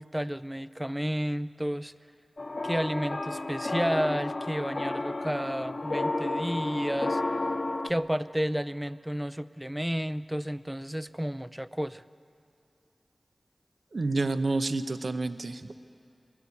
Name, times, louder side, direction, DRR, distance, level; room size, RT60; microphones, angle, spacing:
voice 1, 0.0-1.9 2.6-7.2 7.8-12.0, equal, 10° right, 14 dB, 0.4 m, -31 dB
sound 1, 2.4-7.9, left 2 dB, 55° left, 0.9 m, -32 dB
voice 2, 13.9-15.8, right 3 dB, 70° right, 10 dB, 0.7 m, -29 dB
21.5 x 17.0 x 8.3 m, 2.5 s
cardioid pair, 45°, 0 cm